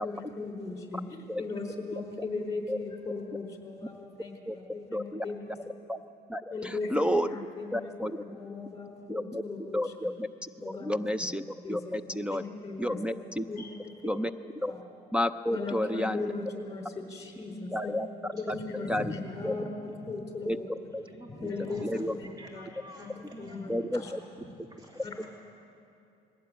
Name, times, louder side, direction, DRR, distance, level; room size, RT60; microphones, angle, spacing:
voice 1, 0.0-5.6 6.5-7.9 8.3-9.9 10.6-10.9 11.6-11.9 12.3-13.0 13.5-14.3 14.6-14.8 15.5-17.9 18.3-20.7 21.3-22.3 22.5-22.7 23.0-24.1 25.0-25.2, left 3 dB, 20° left, 2 dB, 4.6 m, -38 dB
voice 2, 4.9-5.2 5.9-6.0 6.3-7.3 7.7-8.4 9.1-9.4 9.7-11.4 11.7-12.4 12.8-13.4 14.0-14.3 14.6-14.7 15.1-16.3 17.7-18.1 18.5-18.6 18.9-19.1 19.4-19.5 20.5-20.6 20.9-21.0 21.4-21.5 21.8-22.2 23.7-24.2, equal, 5° right, 11 dB, 0.5 m, -31 dB
voice 3, 18.8-19.3 19.9-20.0 21.1-25.3, equal, 25° right, 0 dB, 2.6 m, -50 dB
21.0 x 17.0 x 9.1 m, 2.7 s
cardioid pair, 110°, 17 cm